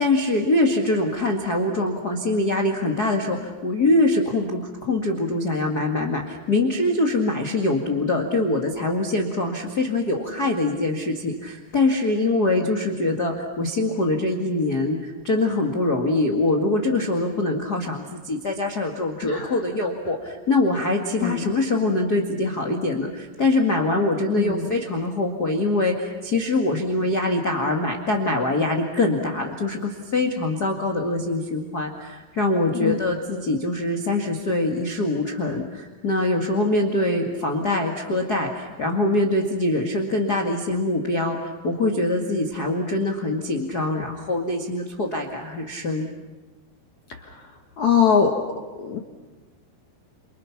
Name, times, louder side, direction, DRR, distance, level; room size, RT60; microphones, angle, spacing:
voice 1, 0.0-46.1, left 2 dB, 75° left, 1 dB, 0.9 m, -23 dB
voice 2, 19.2-19.5 21.2-21.5 24.4-24.7 32.8-33.0 47.2-47.4 47.8-48.4 48.8-49.0, left 7 dB, 60° left, 2 dB, 2.1 m, -22 dB
30.0 x 28.5 x 5.9 m, 1.2 s
omnidirectional pair, 5.5 m